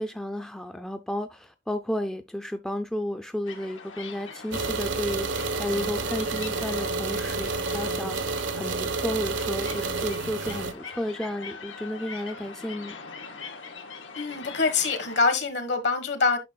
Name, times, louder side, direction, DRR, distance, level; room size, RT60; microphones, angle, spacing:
voice 1, 0.0-13.0, left 1 dB, 5° left, 0.4 m, -33 dB
sound 1, 3.4-15.2, left 5 dB, 90° left, 1.6 m, -42 dB
sound 2, 4.5-10.7, right 3 dB, 80° right, 0.9 m, -30 dB
voice 2, 14.1-16.4, left 4 dB, 65° left, 1.4 m, -25 dB
9.4 x 5.9 x 2.2 m
head